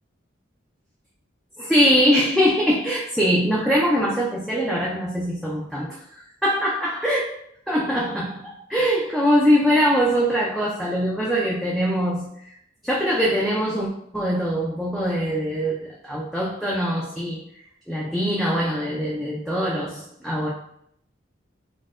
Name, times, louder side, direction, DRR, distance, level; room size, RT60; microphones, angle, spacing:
voice 1, 1.6-7.2 7.7-12.5 12.8-13.9 14.1-17.4 17.9-20.5, equal, ahead, -6 dB, 0.3 m, -22 dB
4.0 x 2.2 x 2.4 m, 0.71 s
head